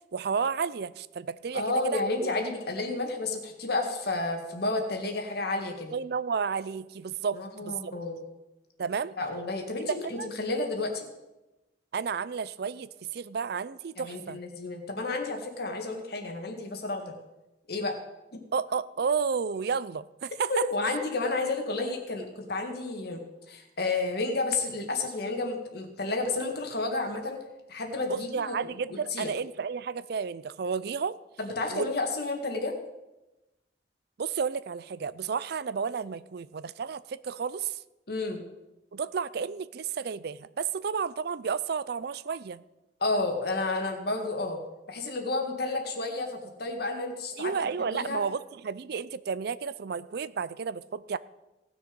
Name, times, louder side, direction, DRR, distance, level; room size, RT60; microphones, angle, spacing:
voice 1, 0.1-2.3 5.9-7.9 8.8-9.1 10.0-10.3 11.9-14.4 18.5-20.7 28.1-31.2 31.7-31.9 34.2-37.8 38.9-42.6 47.4-51.2, right 6 dB, 60° right, 18 dB, 0.4 m, -32 dB
voice 2, 1.5-5.9 7.3-8.2 9.2-11.1 14.0-17.1 17.7-17.9 18.3-18.4 20.5-28.5 29.1-29.3 31.4-32.8 38.1-38.4 43.0-44.6 44.9-47.5 47.9-48.2, left 3 dB, 60° left, 4 dB, 1.9 m, -31 dB
18.0 x 6.4 x 5.2 m, 1.0 s
head